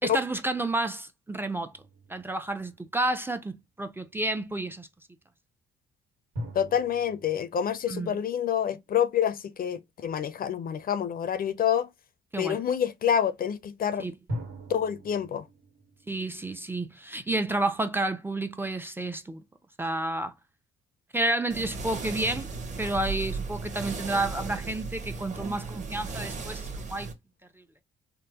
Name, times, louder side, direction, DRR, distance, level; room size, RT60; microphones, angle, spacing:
voice 1, 0.0-1.7 2.1-4.9 7.9-8.2 12.3-12.6 14.0-14.2 16.1-19.4 19.8-20.3 21.1-22.5 22.8-27.1 27.6-27.7, right 2 dB, 10° right, 0.4 m, -30 dB
sound 1, 1.7-3.4 6.3-9.0 14.3-17.3, equal, 85° right, 1.7 m, -42 dB
voice 2, 6.5-11.9 12.4-14.1 14.7-15.5, left 9 dB, 45° left, 0.5 m, -27 dB
sound 2, 21.5-27.1, right 4 dB, 40° right, 1.0 m, -36 dB
3.6 x 2.1 x 2.8 m
cardioid pair, 90°, 20 cm